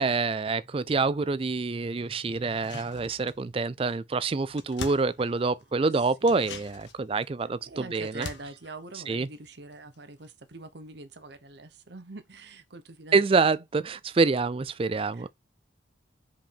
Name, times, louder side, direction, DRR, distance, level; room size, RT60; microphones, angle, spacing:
voice 1, 0.0-8.3 9.1-9.3 13.1-15.3, right 4 dB, 30° right, 0.3 m, -26 dB
sound 1, 2.4-3.6 3.9-4.0 4.2-5.8 6.2-10.0 10.2-10.3, left 4 dB, 70° left, 1.1 m, -44 dB
voice 2, 5.7-6.6 7.6-13.4 15.1-15.3, right 2 dB, 60° right, 0.9 m, -44 dB
5.2 x 5.0 x 5.1 m
head